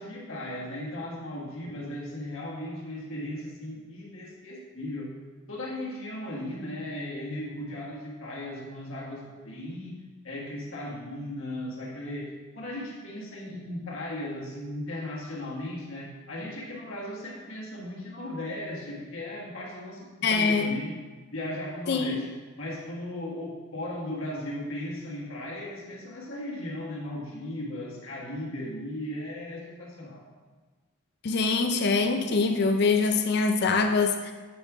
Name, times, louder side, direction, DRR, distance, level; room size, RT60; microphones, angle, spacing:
voice 1, 0.0-5.1 5.5-10.0 10.2-21.0 21.3-22.3 22.6-30.3, left 1 dB, 65° left, -4 dB, 1.7 m, -37 dB
voice 2, 20.2-20.8 21.9-22.2 31.2-34.3, left 4 dB, 50° left, 5 dB, 0.4 m, -24 dB
8.6 x 5.3 x 3.5 m, 1.3 s
head